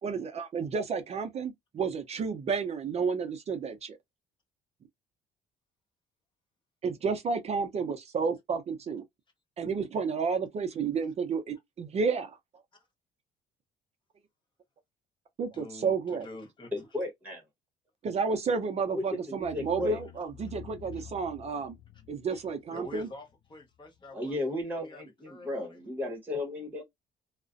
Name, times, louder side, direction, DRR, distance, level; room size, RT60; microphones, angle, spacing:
voice 1, 0.0-4.0 6.8-9.0 9.6-12.4 15.4-16.3 18.0-21.8 22.1-23.1, right 5 dB, 40° right, 0.5 m, -31 dB
voice 2, 15.5-16.9 22.3-22.4 22.7-24.3 24.8-25.8, left 2 dB, 30° left, 0.9 m, -47 dB
voice 3, 16.7-17.4 18.9-20.0 24.1-26.8, left 2 dB, 10° right, 1.0 m, -34 dB
sound 1, 18.8-19.0 19.4-24.0, left 9 dB, 45° left, 0.4 m, -49 dB
2.4 x 2.1 x 2.4 m
cardioid pair, 110°, 17 cm